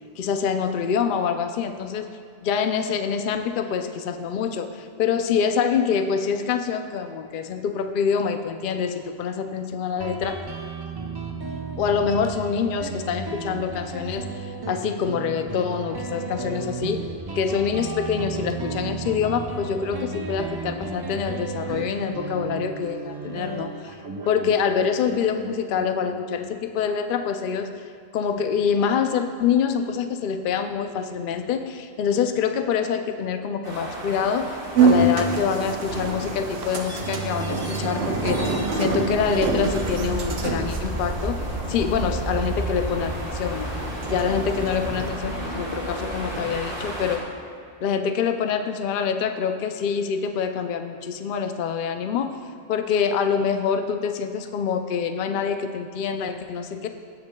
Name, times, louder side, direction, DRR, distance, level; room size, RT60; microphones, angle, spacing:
voice 1, 0.2-2.1 2.4-10.4 11.8-14.3 14.7-17.1 17.3-23.9 24.3-27.7 28.1-41.4 41.7-43.7 44.1-47.2 47.8-52.3 52.7-56.9, left 6 dB, 60° left, 7 dB, 0.7 m, -25 dB
Guitar, 10.0-27.2, right 4 dB, 30° right, 0.5 m, -34 dB
sound 1, 33.6-47.2, right 1 dB, 65° right, 2.1 m, -32 dB
sound 2, 34.7-45.1, right 3 dB, 85° right, 1.1 m, -26 dB
17.0 x 6.7 x 2.2 m, 2.5 s
omnidirectional pair, 1.0 m